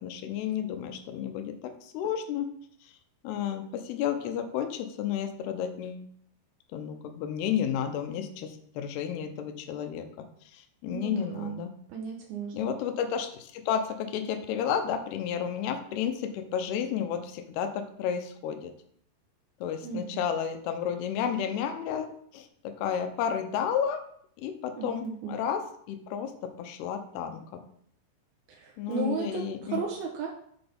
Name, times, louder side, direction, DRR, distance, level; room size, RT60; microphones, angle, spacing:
voice 1, 0.0-2.5 3.2-6.0 6.7-10.1 10.5-11.7 12.5-18.7 19.6-24.0 24.4-27.6 28.8-29.8, left 8 dB, 80° left, 7 dB, 2.6 m, -32 dB
voice 2, 10.9-11.6 11.9-12.7 19.8-20.2 24.8-25.1 28.5-30.3, right 6 dB, 75° right, -1 dB, 2.4 m, -35 dB
7.8 x 4.1 x 5.1 m, 0.64 s
omnidirectional pair, 5.0 m